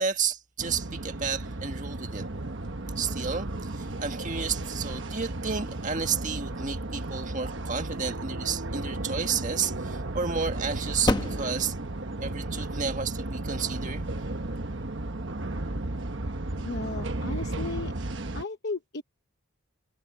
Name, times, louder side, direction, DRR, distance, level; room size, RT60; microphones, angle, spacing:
voice 1, 0.0-2.2 3.0-11.8 12.2-14.1, right 6 dB, 35° right, 1.8 m, -31 dB
sound 1, 0.6-18.4, right 2 dB, 55° right, 1.2 m, -34 dB
Piano, 7.6-13.1, right 2 dB, 85° right, 3.4 m, -45 dB
sound 2, 8.7-15.7, left 1 dB, 20° left, 1.0 m, -36 dB
voice 2, 16.6-17.9 18.3-19.0, left 3 dB, 50° left, 0.9 m, -35 dB
head